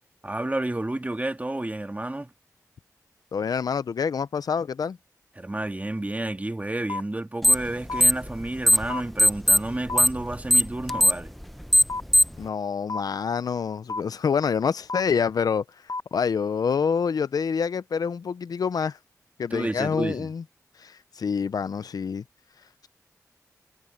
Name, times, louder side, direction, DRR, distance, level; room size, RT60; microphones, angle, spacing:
voice 1, 0.2-2.3 5.4-11.3 19.5-20.3, right 1 dB, 25° right, 1.8 m, -30 dB
voice 2, 3.3-5.0 12.4-15.6 16.1-19.0 19.4-20.4 20.8-22.2, left 6 dB, 80° left, 0.6 m, -26 dB
sound 1, 6.9-7.0 7.9-8.0 8.9-9.0 9.9-10.0 10.9-11.0 11.9-12.0 12.9-13.0 13.9-14.0 14.9-15.0 15.9-16.0, left 3 dB, 60° left, 1.0 m, -29 dB
sound 2, 7.4-7.7 8.0-8.9 9.2-12.4, equal, ahead, 0.8 m, -18 dB
cardioid pair, 45°, 6 cm